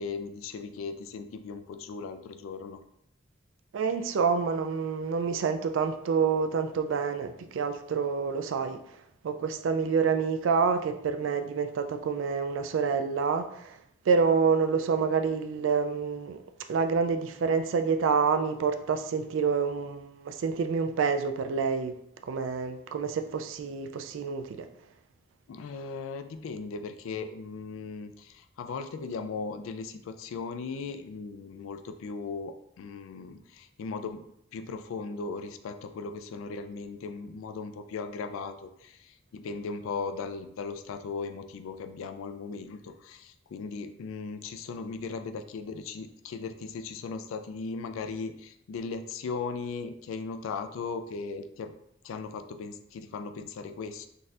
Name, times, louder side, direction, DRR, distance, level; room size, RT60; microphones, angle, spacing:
voice 1, 0.0-2.8 25.5-34.2 34.5-51.7 52.0-54.1, left 4 dB, 90° left, 9 dB, 0.3 m, -37 dB
voice 2, 3.7-8.8 9.2-13.5 14.1-16.4 16.7-21.9 22.3-24.4, right 5 dB, 75° right, 8 dB, 0.3 m, -27 dB
3.8 x 2.4 x 2.6 m, 0.74 s
head